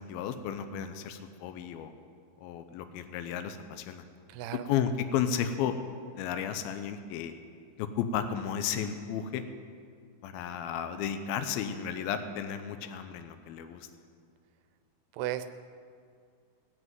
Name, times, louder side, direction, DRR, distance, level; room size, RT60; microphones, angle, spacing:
voice 1, 0.0-1.9 2.4-4.0 4.5-5.7 6.1-7.3 7.8-9.4 10.2-13.9, left 8 dB, 80° left, 8 dB, 2.5 m, -33 dB
voice 2, 4.3-4.7 15.1-15.4, right 13 dB, 90° right, 10 dB, 2.7 m, -34 dB
19.0 x 6.4 x 9.1 m, 2.3 s
omnidirectional pair, 4.4 m